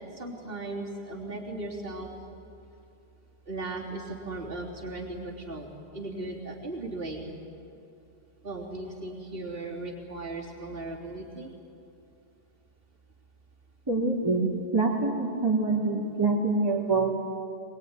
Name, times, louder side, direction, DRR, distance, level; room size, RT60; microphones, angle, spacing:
voice 1, 0.1-2.1 3.5-7.2 8.4-11.5, right 2 dB, 55° right, -2 dB, 3.6 m, -37 dB
voice 2, 13.9-17.1, right 3 dB, 20° right, -3 dB, 3.1 m, -25 dB
23.0 x 21.0 x 9.6 m, 2.6 s
omnidirectional pair, 1.1 m